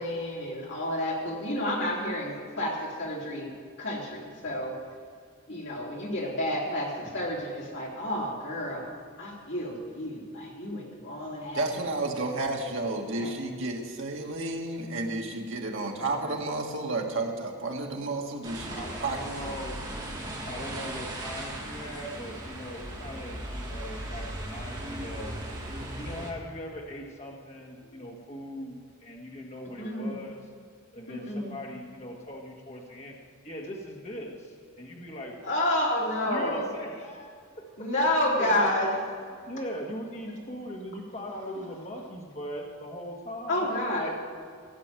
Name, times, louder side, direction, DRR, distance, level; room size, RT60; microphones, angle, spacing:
voice 1, 0.0-3.5 3.8-4.8 5.5-8.9 9.2-11.6 13.2-13.3 27.9-28.0 29.8-30.2 31.1-31.6 35.4-36.7 37.8-38.9 43.5-44.1, left 1 dB, 55° left, -4 dB, 3.4 m, -30 dB
voice 2, 11.5-19.2, right 2 dB, 60° right, 1 dB, 1.7 m, -31 dB
voice 3, 16.0-16.4 18.7-19.8 20.5-25.3 26.0-30.4 30.9-33.1 33.4-35.6 36.2-37.9 38.4-38.7 39.5-43.7 44.0-44.1, equal, 30° left, -1 dB, 1.7 m, -40 dB
sound 1, 18.4-26.3, right 1 dB, 20° right, 2.0 m, -37 dB
16.0 x 6.3 x 9.0 m, 2.1 s
head